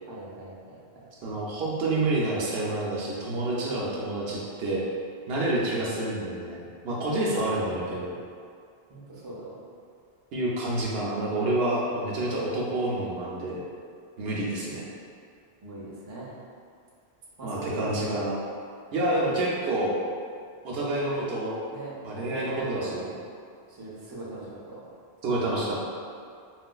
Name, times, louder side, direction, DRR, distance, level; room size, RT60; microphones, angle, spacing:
voice 1, 0.1-1.1 5.6-6.3 7.4-7.8 8.9-9.6 14.5-14.8 15.6-16.4 17.4-18.3 21.7-23.1 23.7-24.8, right 2 dB, 30° right, -7 dB, 0.6 m, -40 dB
voice 2, 1.2-4.8 5.3-8.2 10.3-13.6 14.2-14.8 17.4-18.4 18.9-20.0 20.6-21.6 22.0-23.1 25.2-25.8, right 1 dB, 70° right, -5 dB, 0.8 m, -28 dB
3.8 x 2.4 x 2.2 m, 2.2 s
omnidirectional pair, 1.1 m